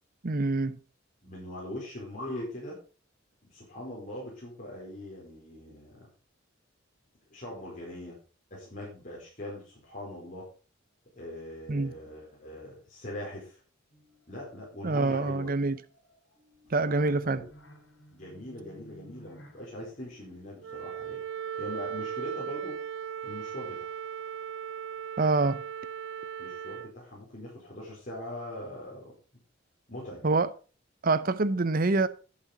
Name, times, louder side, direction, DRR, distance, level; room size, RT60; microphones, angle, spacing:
voice 1, 0.2-0.8 11.7-11.9 14.8-15.8 16.7-17.4 25.2-25.6 30.2-30.5 31.0-32.1, right 3 dB, 45° right, 0.7 m, -26 dB
voice 2, 1.2-2.8 3.5-6.1 7.3-8.2 8.5-10.5 11.1-13.6 14.3-15.5 16.8-17.4 18.1-21.2 21.6-22.8 23.2-24.0 26.4-29.1 29.9-30.3, left 1 dB, 40° left, 4.7 m, -41 dB
sound 1, 13.9-23.0, right 1 dB, 70° left, 4.7 m, -57 dB
Wind instrument woodwind instrument, 20.6-26.9, right 8 dB, 85° right, 0.5 m, -37 dB
11.0 x 7.6 x 5.3 m
head